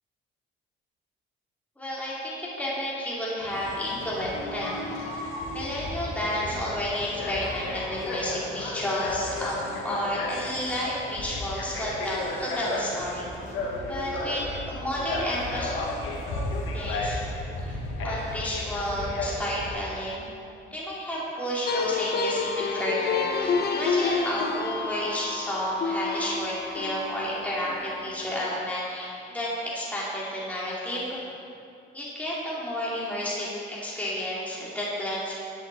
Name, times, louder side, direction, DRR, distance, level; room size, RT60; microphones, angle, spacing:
voice 1, 1.8-13.3 13.8-15.8 16.7-17.2 17.6-17.8 18.0-20.2 20.7-31.2 31.9-35.3, equal, 5° left, -7 dB, 2.6 m, -31 dB
sound 1, 3.4-19.7, left 2 dB, 90° left, 1.5 m, -34 dB
sound 2, 21.7-28.4, left 4 dB, 55° left, 0.9 m, -29 dB
10.5 x 8.5 x 4.0 m, 2.6 s
cardioid pair, 90°, 20 cm